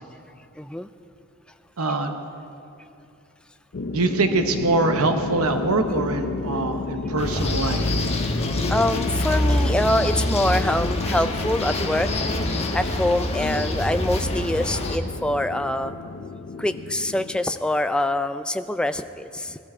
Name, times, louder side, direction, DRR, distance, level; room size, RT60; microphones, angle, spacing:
voice 1, 0.6-0.9 8.7-12.1 12.7-15.9 16.6-19.6, left 1 dB, 5° left, 9 dB, 0.3 m, -24 dB
voice 2, 1.8-2.1 3.9-7.9, right 3 dB, 80° right, 6 dB, 0.9 m, -23 dB
sound 1, 3.7-17.4, left 3 dB, 50° left, 0.6 m, -32 dB
sound 2, 7.2-15.0, left 1 dB, 30° left, 1.1 m, -25 dB
19.5 x 13.0 x 4.3 m, 2.7 s
head